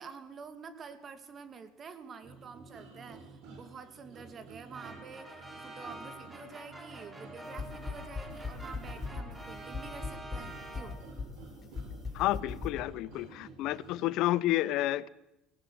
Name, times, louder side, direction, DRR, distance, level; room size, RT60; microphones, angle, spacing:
voice 1, 0.0-11.0, right 5 dB, 40° right, 10 dB, 2.4 m, -48 dB
sound 1, 2.2-14.1, right 3 dB, 65° right, 6.4 m, -50 dB
sound 2, 4.7-11.3, right 1 dB, 15° right, 4.6 m, -48 dB
sound 3, 7.4-12.8, left 4 dB, 35° left, 4.9 m, -38 dB
voice 2, 12.1-15.1, left 16 dB, 65° left, 19 dB, 0.7 m, -30 dB
18.5 x 18.0 x 7.8 m, 0.92 s
supercardioid pair, 90°, 0 cm